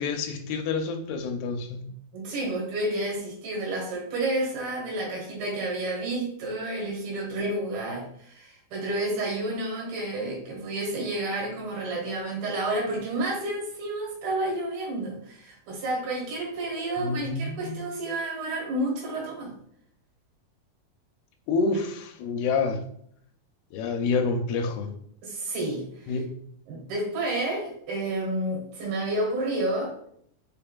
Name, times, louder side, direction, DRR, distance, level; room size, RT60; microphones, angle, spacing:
voice 1, 0.0-1.8 17.0-17.9 21.5-22.8 23.7-24.9 26.1-26.3, left 4 dB, 90° left, 6 dB, 2.6 m, -28 dB
voice 2, 2.1-19.6 25.2-26.2 26.7-29.9, right 1 dB, 75° right, -2 dB, 3.3 m, -30 dB
6.8 x 3.5 x 2.2 m, 0.65 s
omnidirectional pair, 4.4 m